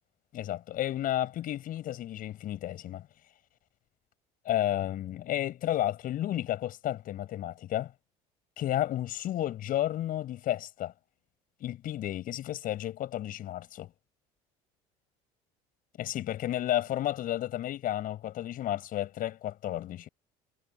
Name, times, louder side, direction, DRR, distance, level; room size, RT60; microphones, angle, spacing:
voice 1, 0.3-3.1 4.5-7.9 8.6-10.9 11.6-13.9 16.0-20.1, left 13 dB, 60° left, 7.2 m, -32 dB
hypercardioid pair, 70°, 17 cm